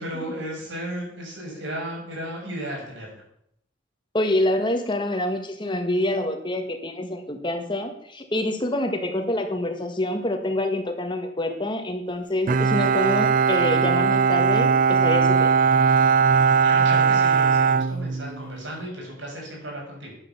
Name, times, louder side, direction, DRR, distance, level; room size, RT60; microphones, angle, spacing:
voice 1, 0.0-3.1 16.6-20.1, right 1 dB, 85° right, -1 dB, 6.7 m, -34 dB
voice 2, 4.1-15.5, left 1 dB, 25° left, 5 dB, 1.7 m, -26 dB
Bowed string instrument, 12.5-18.6, right 5 dB, 45° right, 0.5 m, -19 dB
12.0 x 9.1 x 7.2 m, 0.72 s
head